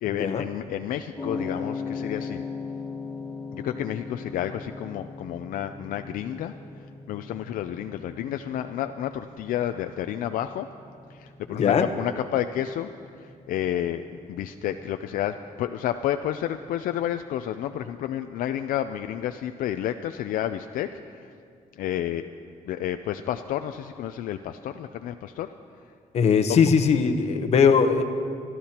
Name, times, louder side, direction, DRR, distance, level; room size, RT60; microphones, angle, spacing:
voice 1, 0.0-2.4 3.5-6.5 7.1-10.7 11.1-12.9 13.2-14.0 14.3-21.3 21.8-22.2 22.6-25.5 26.5-26.6, left 11 dB, 75° left, 8 dB, 0.4 m, -30 dB
sound 1, 1.2-19.4, left 4 dB, 10° left, 1.9 m, -40 dB
voice 2, 11.5-11.9 26.1-28.0, left 6 dB, 50° left, 7 dB, 0.9 m, -20 dB
25.5 x 12.5 x 2.9 m, 2.3 s
cardioid pair, 160°, 14 cm